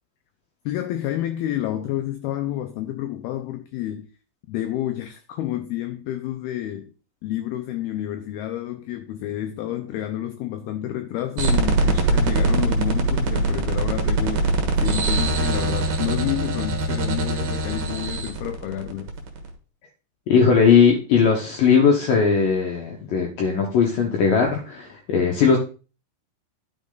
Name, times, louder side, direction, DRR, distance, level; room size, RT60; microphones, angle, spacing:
voice 1, 0.7-4.1 4.5-6.9 7.2-14.5 14.8-19.1, left 12 dB, 85° left, 2.2 m, -29 dB
sound 1, 11.4-19.5, right 2 dB, 60° right, 2.4 m, -22 dB
voice 2, 20.3-25.6, left 6 dB, 70° left, 2.1 m, -18 dB
11.0 x 6.4 x 3.9 m
omnidirectional pair, 5.3 m